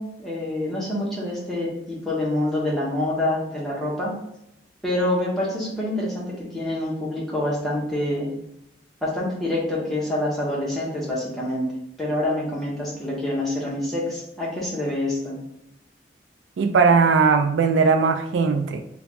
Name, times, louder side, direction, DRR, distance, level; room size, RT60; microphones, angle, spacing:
voice 1, 0.0-4.1 4.8-8.3 9.0-11.7 12.0-15.4, left 1 dB, ahead, -6 dB, 1.0 m, -26 dB
voice 2, 16.6-18.8, right 5 dB, 75° right, 7 dB, 0.3 m, -18 dB
3.3 x 2.3 x 4.0 m, 0.81 s
head